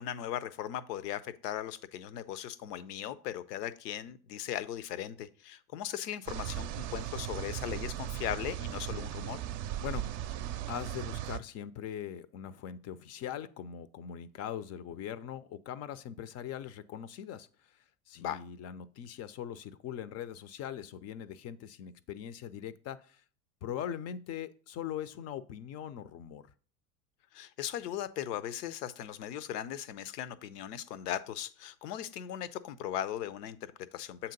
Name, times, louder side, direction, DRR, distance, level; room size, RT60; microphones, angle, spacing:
voice 1, 0.0-9.4 18.2-18.4 27.3-34.3, left 11 dB, 80° left, 0.6 m, -38 dB
sound 1, 6.3-11.4, right 12 dB, 50° right, 0.5 m, -37 dB
voice 2, 10.7-17.5 18.1-23.2 23.6-26.5, left 9 dB, 35° left, 0.4 m, -41 dB
7.2 x 2.9 x 5.1 m
hypercardioid pair, 85°, 47 cm